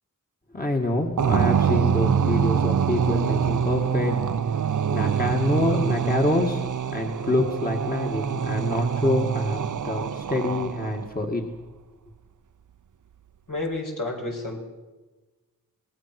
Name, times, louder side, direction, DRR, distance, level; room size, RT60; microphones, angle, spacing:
voice 1, 0.5-4.2 4.9-11.4, left 1 dB, 25° left, 1 dB, 2.1 m, -26 dB
sound 1, 1.2-11.1, right 7 dB, 60° right, 0.7 m, -25 dB
voice 2, 13.5-14.6, left 2 dB, 70° left, 1 dB, 5.8 m, -30 dB
25.5 x 20.0 x 6.1 m, 1.2 s
wide cardioid pair, 90°, 34 cm